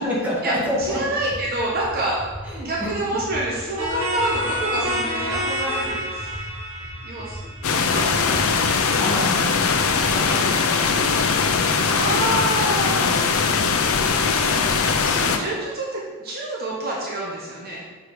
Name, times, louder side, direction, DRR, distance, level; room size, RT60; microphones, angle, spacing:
voice 1, 0.0-1.0 2.4-2.9 9.0-11.6 13.0-13.5, left 1 dB, 5° right, -6 dB, 1.8 m, -29 dB
sound 1, 0.6-8.5, equal, 15° left, 1.6 m, -38 dB
voice 2, 0.8-2.2 2.6-6.4 7.0-8.6 11.9-13.1 15.0-17.8, right 1 dB, 45° right, -4 dB, 1.1 m, -27 dB
sound 2, 3.8-8.3, equal, 70° right, 1.9 m, -28 dB
sound 3, 7.6-15.4, left 5 dB, 80° left, 0.6 m, -20 dB
6.1 x 4.8 x 5.0 m, 1.4 s
head